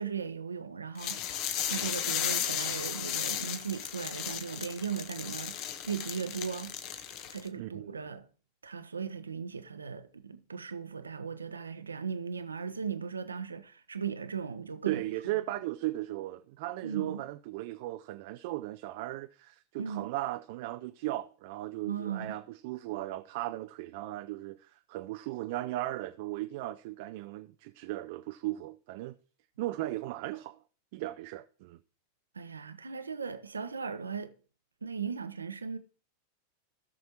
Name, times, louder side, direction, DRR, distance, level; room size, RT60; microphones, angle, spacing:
voice 1, 0.0-6.8 7.3-8.3 8.6-15.0 16.8-17.2 19.8-20.1 21.8-22.4 32.3-34.3 34.8-35.8, right 6 dB, 75° right, 0.8 m, -37 dB
sound 1, 1.0-7.5, left 10 dB, 40° left, 0.9 m, -35 dB
voice 2, 7.6-8.0 14.9-29.2 29.6-30.6 30.9-31.8, right 16 dB, 50° right, 0.4 m, -37 dB
16.5 x 6.3 x 2.9 m
figure-of-eight pair, 90°, 0 cm